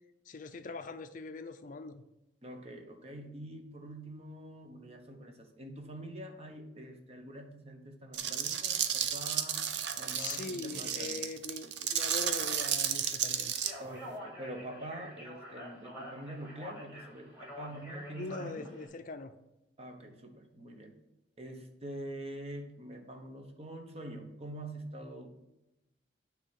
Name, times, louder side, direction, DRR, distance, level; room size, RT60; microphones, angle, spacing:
voice 1, 0.3-2.0 10.2-13.5 18.1-19.3, left 3 dB, 45° left, 10 dB, 0.5 m, -42 dB
voice 2, 2.4-11.1 13.8-18.7 19.8-21.0 21.4-25.3, right 1 dB, 35° right, 4 dB, 1.1 m, -45 dB
sound 1, 8.1-13.7, right 9 dB, 70° right, 0.6 m, -33 dB
Speech, 13.5-18.9, equal, 15° right, 3.0 m, -47 dB
9.1 x 3.5 x 6.2 m, 0.95 s
head